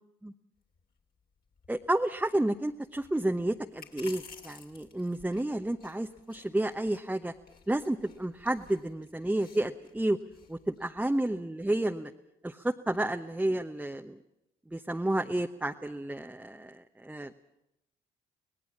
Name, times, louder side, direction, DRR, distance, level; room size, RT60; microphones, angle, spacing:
sound 1, 0.6-11.1, left 5 dB, 55° left, 3.1 m, -55 dB
voice 1, 1.7-7.3 7.7-10.2 10.5-12.1 12.4-14.2 14.7-17.3, right 1 dB, 10° right, 5 dB, 1.0 m, -31 dB
25.0 x 18.5 x 7.3 m, 0.84 s
hypercardioid pair, 50°, 19 cm